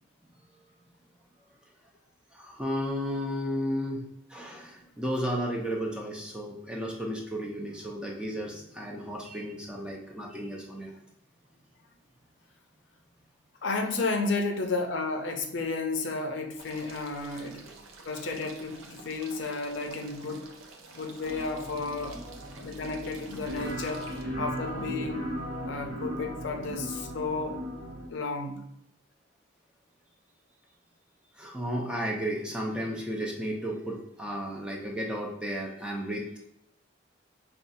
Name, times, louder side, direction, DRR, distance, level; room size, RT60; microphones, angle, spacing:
voice 1, 2.3-4.0 4.3-10.9 31.3-36.5, equal, 5° right, -1 dB, 0.5 m, -33 dB
voice 2, 13.6-17.7 18.1-20.5 20.9-22.2 22.6-25.3 25.6-27.7 28.1-28.7, left 3 dB, 60° left, 4 dB, 0.5 m, -32 dB
sound 1, 16.6-24.2, right 3 dB, 85° right, 0.6 m, -49 dB
sound 2, 21.2-28.1, equal, 50° right, 1.2 m, -37 dB
5.3 x 2.3 x 2.6 m, 0.76 s
head